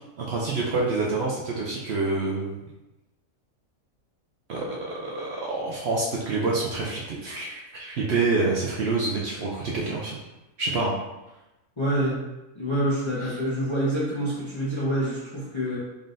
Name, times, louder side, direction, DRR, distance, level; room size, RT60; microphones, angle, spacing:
voice 1, 0.2-2.6 4.5-10.2 10.6-11.0, right 3 dB, 60° right, -3 dB, 0.7 m, -27 dB
voice 2, 11.8-12.3 12.5-15.8, right 1 dB, 30° left, -7 dB, 0.6 m, -26 dB
3.9 x 3.7 x 2.5 m, 1.0 s
omnidirectional pair, 1.5 m